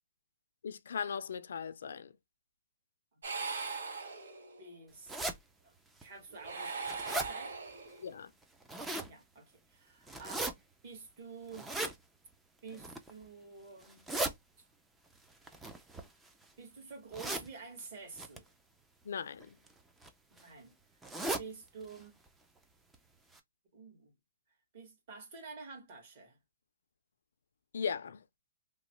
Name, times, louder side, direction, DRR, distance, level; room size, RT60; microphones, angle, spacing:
voice 1, 0.6-2.1 8.0-8.3 19.0-19.6 27.7-28.2, left 6 dB, 70° left, 0.4 m, -38 dB
sound 1, 3.2-4.7 6.3-8.1, right 4 dB, 80° right, 1.1 m, -40 dB
voice 2, 4.6-5.2 5.6-5.7 6.0-7.6 8.8-10.5 10.8-11.7 12.6-14.1 16.6-18.5 20.3-20.7 21.4-22.1 23.7-24.1 24.7-26.4, right 4 dB, 45° right, 1.6 m, -49 dB
sound 2, 5.1-5.4 6.0-6.1 6.5-7.3 8.4-9.1 10.1-10.5 11.5-11.9 12.7-13.1 13.8-14.3 15.4-16.4 17.1-17.5 18.2-18.4 19.4-19.7 20.0-20.1 20.4-20.5 21.0-21.5 21.9-22.0 22.3-22.4 22.9-23.0 23.3-23.4, right 2 dB, 5° right, 0.4 m, -37 dB
3.0 x 2.1 x 3.0 m
hypercardioid pair, 160°, 0 cm